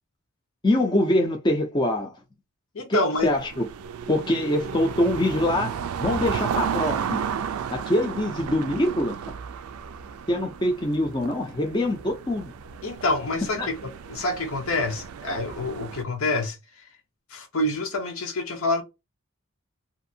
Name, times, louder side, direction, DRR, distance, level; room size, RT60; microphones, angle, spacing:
voice 1, 0.6-2.1 2.9-3.6 4.1-7.2 7.7-9.2 10.3-12.5 13.6-13.7, left 1 dB, 20° left, 0.4 m, -24 dB
voice 2, 2.7-3.3 12.8-16.6 17.3-18.8, left 2 dB, 75° left, 0.8 m, -27 dB
sound 1, 3.2-16.0, right 7 dB, 80° right, 0.3 m, -33 dB
2.7 x 2.6 x 2.6 m
head